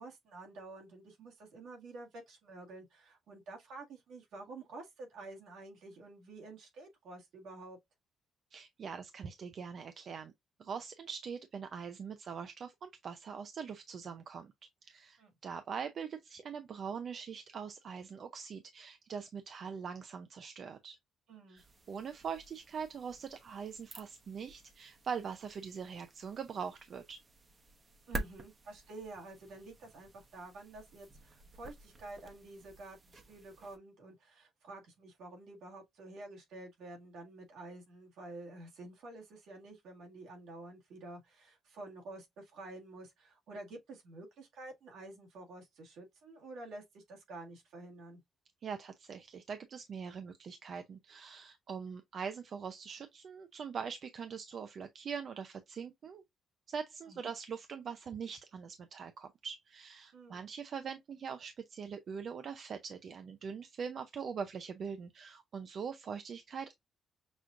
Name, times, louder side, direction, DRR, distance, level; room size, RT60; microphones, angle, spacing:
voice 1, 0.0-7.8 15.2-15.3 21.3-21.6 28.1-48.2 57.1-57.3 60.1-60.4, right 2 dB, 80° right, 1.6 m, -50 dB
voice 2, 8.5-10.3 10.6-14.5 14.8-21.0 21.5-27.2 48.6-56.2 56.7-66.7, right 6 dB, 55° right, 0.5 m, -42 dB
sound 1, 21.6-33.8, right 2 dB, 35° right, 0.8 m, -49 dB
6.1 x 2.4 x 2.5 m
cardioid pair, 90°, 0 cm